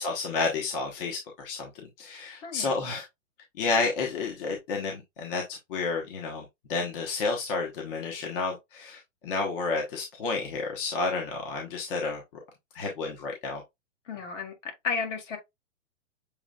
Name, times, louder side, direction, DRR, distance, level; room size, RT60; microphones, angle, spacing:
voice 1, 0.0-3.0 3.6-12.2 12.7-13.6, left 4 dB, 45° left, 1.2 m, -31 dB
voice 2, 2.4-2.9 14.1-15.4, left 5 dB, 65° left, 2.1 m, -33 dB
7.0 x 3.2 x 2.4 m
hypercardioid pair, 160°, 40 cm